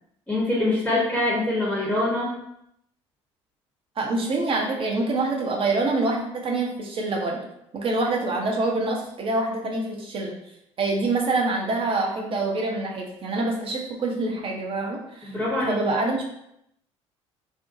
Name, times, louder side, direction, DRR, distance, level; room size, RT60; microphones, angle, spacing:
voice 1, 0.3-2.4 15.3-15.8, left 1 dB, 5° left, -6 dB, 0.8 m, -24 dB
voice 2, 4.0-7.4 7.7-10.3 10.8-15.4 15.7-16.3, right 2 dB, 35° right, 0 dB, 0.7 m, -26 dB
2.6 x 2.2 x 2.6 m, 0.77 s
figure-of-eight pair, 55°, 16 cm